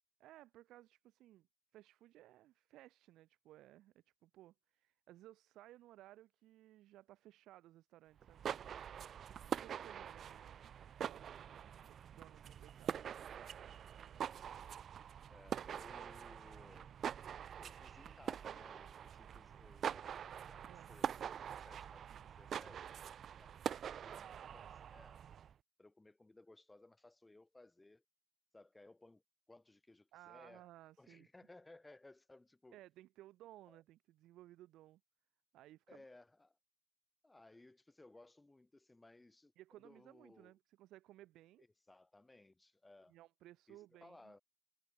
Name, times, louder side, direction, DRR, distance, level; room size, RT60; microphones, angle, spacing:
voice 1, 0.2-1.5 1.7-8.5 9.5-13.2 20.7-20.9 30.1-31.3 32.7-35.0 35.5-36.0 39.6-41.6 43.1-44.3, right 15 dB, 90° right, 4.1 m, -60 dB
sound 1, 8.2-25.5, right 8 dB, 60° right, 0.5 m, -45 dB
voice 2, 15.3-17.0 17.6-25.2 25.8-28.0 28.5-29.2 29.5-30.6 31.0-32.8 33.7-33.8 35.9-36.6 37.2-40.5 41.6-43.1 43.7-44.4, left 2 dB, 15° left, 6.9 m, -62 dB
cardioid pair, 90°, 0 cm